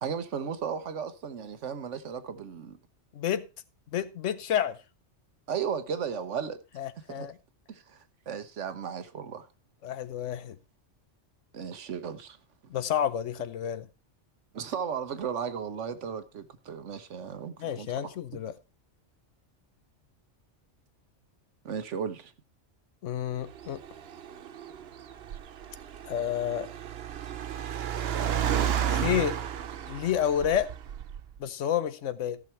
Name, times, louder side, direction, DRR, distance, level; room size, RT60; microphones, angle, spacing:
voice 1, 0.0-2.8 5.5-6.6 7.1-7.3 7.7-9.5 11.5-12.4 14.5-18.1 21.6-22.3, right 7 dB, 80° right, 1.3 m, -35 dB
voice 2, 3.1-3.5 3.9-4.8 6.8-7.3 9.8-10.6 12.7-13.9 17.6-18.5 23.0-23.8 26.1-26.7 28.6-29.4 29.9-30.7 31.4-32.4, left 10 dB, 85° left, 1.1 m, -30 dB
Car, 23.4-31.4, right 9 dB, 60° right, 0.9 m, -33 dB
14.5 x 6.2 x 4.4 m
omnidirectional pair, 1.2 m